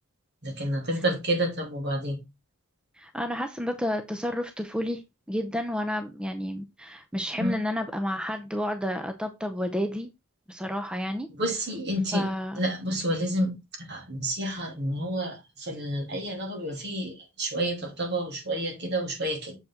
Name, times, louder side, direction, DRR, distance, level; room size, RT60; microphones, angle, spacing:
voice 1, 0.4-2.2 7.3-7.5 11.3-12.3 12.6-13.5 13.8-19.6, right 1 dB, 50° right, 2.8 m, -29 dB
voice 2, 3.0-5.0 5.3-10.1 10.5-11.3 12.1-12.6, equal, 5° right, 0.6 m, -30 dB
7.2 x 5.2 x 3.7 m
head